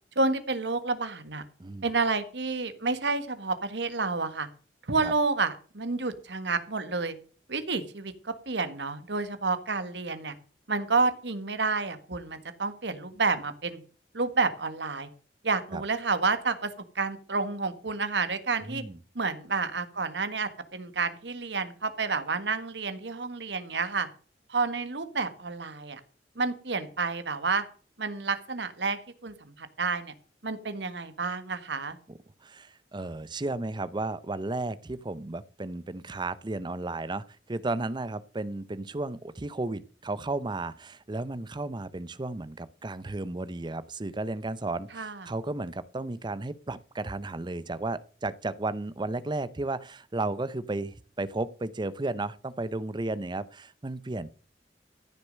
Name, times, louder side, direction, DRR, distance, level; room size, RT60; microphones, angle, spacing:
voice 1, 0.1-1.4 1.8-4.5 4.9-7.1 7.5-10.3 10.7-13.8 14.1-15.1 15.4-18.8 19.1-24.1 24.5-26.0 26.3-27.6 28.0-30.1 30.4-32.0 44.9-45.3, right 4 dB, 70° right, 1.5 m, -30 dB
voice 2, 1.6-1.9 5.0-5.1 15.7-15.8 18.6-19.0 32.1-54.3, right 2 dB, 25° right, 0.6 m, -34 dB
14.5 x 6.6 x 6.4 m
head